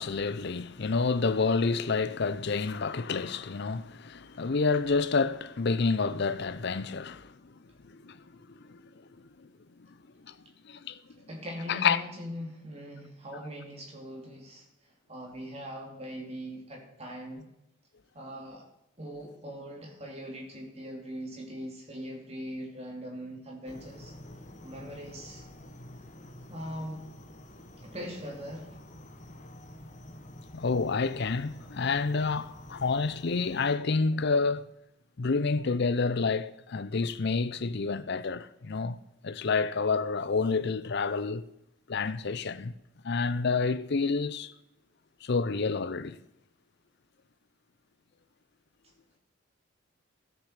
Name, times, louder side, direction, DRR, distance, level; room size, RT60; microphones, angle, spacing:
voice 1, 0.0-7.3 7.8-8.2 8.7-8.8 9.4-9.5 10.3-10.4 10.6-11.0 11.7-12.0 30.5-34.6 35.2-39.0 39.2-41.4 41.9-42.7 43.0-44.5 45.2-46.2, left 4 dB, 55° left, 0.5 m, -28 dB
voice 2, 11.3-17.5 18.1-18.7 19.0-24.1 24.6-25.5 26.5-27.0 27.8-28.8, equal, 30° right, 2.6 m, -41 dB
sound 1, 23.7-33.8, left 1 dB, 35° left, 1.2 m, -48 dB
13.0 x 7.3 x 6.5 m
head